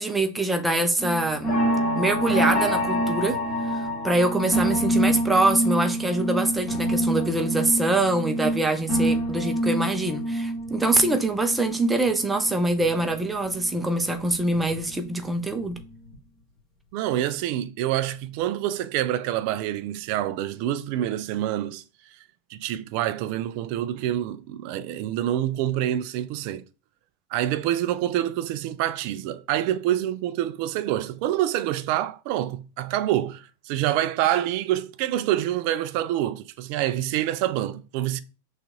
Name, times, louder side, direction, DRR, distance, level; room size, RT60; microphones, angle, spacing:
voice 1, 0.0-1.5 1.9-3.4 3.7-15.8, right 2 dB, 10° right, 0.6 m, -24 dB
sound 1, 1.0-13.1 13.5-15.1 15.5-15.8 16.1-16.2, right 1 dB, 25° left, 2.1 m, -26 dB
voice 2, 16.9-21.8 22.5-26.6 27.3-38.2, right 12 dB, 45° right, 0.3 m, -26 dB
6.0 x 2.4 x 3.0 m
figure-of-eight pair, 90°, 0 cm